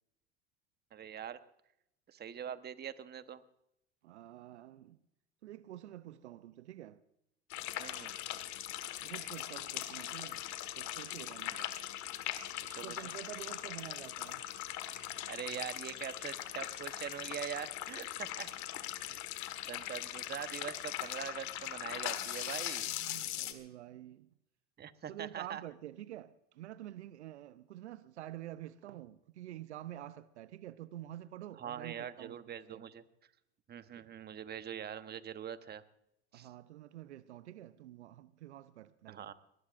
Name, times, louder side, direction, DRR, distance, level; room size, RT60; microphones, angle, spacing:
voice 1, 0.9-1.4 2.1-3.4 7.8-8.1 11.5-11.6 12.7-13.1 15.3-18.5 19.7-22.9 24.8-25.6 31.6-33.0 33.7-35.8 36.3-36.5 39.1-39.3, right 9 dB, 30° right, 1.1 m, -43 dB
voice 2, 4.0-5.0 5.4-7.0 9.0-10.4 10.8-11.6 12.8-14.4 18.9-19.2 22.9-24.3 25.1-32.8 33.9-34.1 36.3-39.3, right 13 dB, 90° right, 0.7 m, -48 dB
sound 1, 7.5-23.5, left 13 dB, 55° left, 1.7 m, -40 dB
22.5 x 19.5 x 2.5 m
hypercardioid pair, 85°, 33 cm